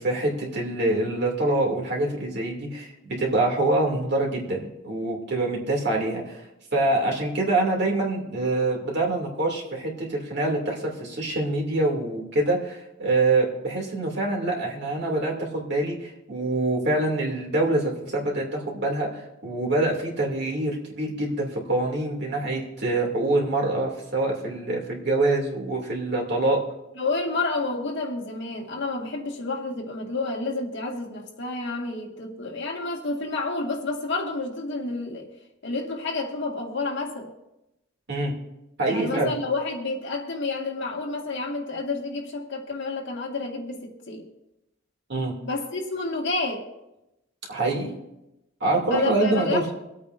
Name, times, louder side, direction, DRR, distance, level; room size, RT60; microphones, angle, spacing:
voice 1, 0.0-6.4 6.7-26.6 38.1-38.4 38.8-39.3 45.1-45.3 47.5-47.9 48.6-49.7, right 2 dB, 55° right, -2 dB, 2.7 m, -25 dB
voice 2, 27.0-35.3 35.6-37.3 38.9-44.3 45.4-46.7 48.9-49.7, left 3 dB, 60° left, 0 dB, 1.9 m, -29 dB
25.0 x 8.6 x 2.6 m, 0.91 s
head